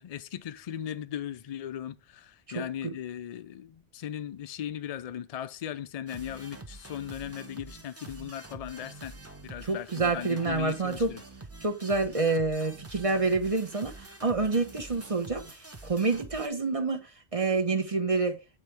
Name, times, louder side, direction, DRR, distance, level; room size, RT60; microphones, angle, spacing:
voice 1, 0.0-9.2 9.4-11.2, left 10 dB, 55° left, 0.4 m, -38 dB
voice 2, 2.5-2.9 9.6-11.1 11.6-18.4, right 3 dB, 35° right, 1.0 m, -28 dB
sound 1, 6.1-16.5, right 3 dB, 15° right, 0.7 m, -46 dB
8.7 x 4.5 x 3.3 m
omnidirectional pair, 1.1 m